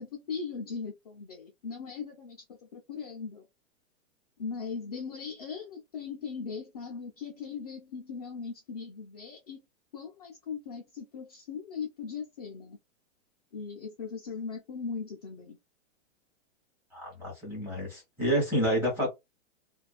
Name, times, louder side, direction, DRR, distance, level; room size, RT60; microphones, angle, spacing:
voice 1, 0.0-2.4 2.7-3.5 4.4-9.6 9.9-12.8 13.5-15.6, left 5 dB, 35° left, 0.4 m, -39 dB
voice 2, 16.9-19.1, equal, 5° right, 0.9 m, -29 dB
2.4 x 2.2 x 2.3 m
hypercardioid pair, 170°, 38 cm